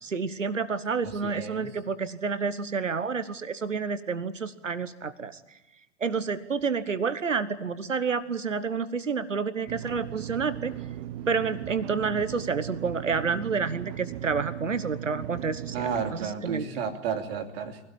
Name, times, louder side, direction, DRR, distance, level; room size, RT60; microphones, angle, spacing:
voice 1, 0.0-5.4 6.0-10.7 11.3-15.9 16.2-16.6, right 5 dB, 85° right, 14 dB, 1.2 m, -29 dB
voice 2, 1.0-1.7 15.7-17.8, right 6 dB, 55° right, 5 dB, 2.9 m, -32 dB
sound 1, 9.7-16.2, right 12 dB, 35° right, 1.1 m, -37 dB
23.5 x 17.5 x 8.7 m, 1.0 s
figure-of-eight pair, 100°, 37 cm